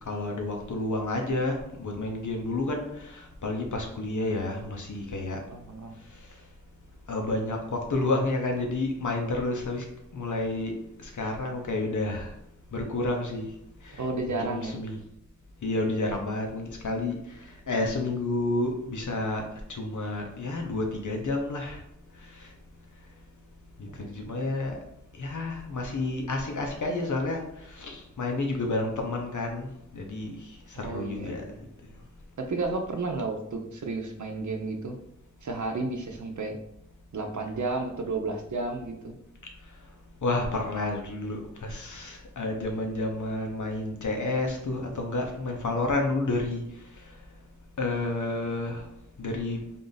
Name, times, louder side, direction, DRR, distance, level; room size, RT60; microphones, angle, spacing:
voice 1, 0.1-5.4 7.1-9.8 10.1-10.7 11.0-12.3 12.7-13.5 13.9-14.0 14.3-15.0 15.6-17.2 17.7-19.4 19.7-21.8 23.8-24.8 25.2-30.4 30.7-31.4 40.2-46.6 47.8-48.8 49.2-49.6, left 2 dB, 85° left, 2 dB, 0.8 m, -30 dB
voice 2, 5.5-5.9 14.0-14.8 23.9-24.1 30.7-31.6 32.4-35.0 35.4-36.6 37.1-39.2, right 3 dB, 75° right, 3 dB, 0.7 m, -32 dB
3.7 x 2.5 x 4.0 m, 0.77 s
wide cardioid pair, 50°, 29 cm